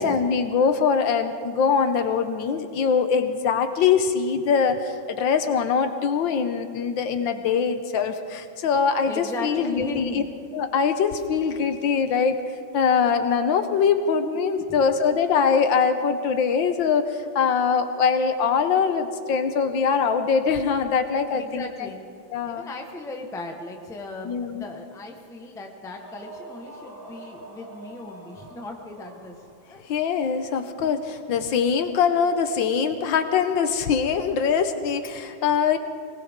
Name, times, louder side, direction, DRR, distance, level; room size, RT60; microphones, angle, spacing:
voice 1, 0.0-10.2 10.5-12.4 12.7-21.6 22.3-22.6 24.2-24.6 29.9-35.8, left 6 dB, 75° left, 9 dB, 1.5 m, -23 dB
voice 2, 9.0-10.3 14.7-14.8 21.3-22.0 22.5-29.9, left 2 dB, ahead, 2 dB, 0.8 m, -37 dB
sound 1, 25.8-29.8, right 2 dB, 20° right, 2.1 m, -45 dB
20.5 x 19.0 x 3.6 m, 2.4 s
omnidirectional pair, 2.2 m